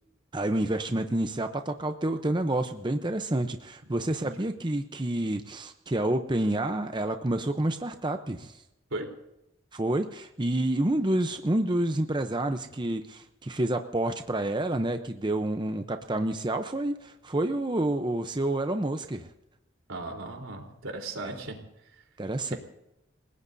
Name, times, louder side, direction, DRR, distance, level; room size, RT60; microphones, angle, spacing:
voice 1, 0.3-8.6 9.7-19.3 21.2-21.3 22.2-22.5, right 1 dB, 20° right, 7 dB, 0.7 m, -29 dB
voice 2, 19.9-21.6 21.9-22.0 22.5-22.6, right 2 dB, 85° right, 2 dB, 3.7 m, -37 dB
29.0 x 18.0 x 2.7 m, 0.85 s
head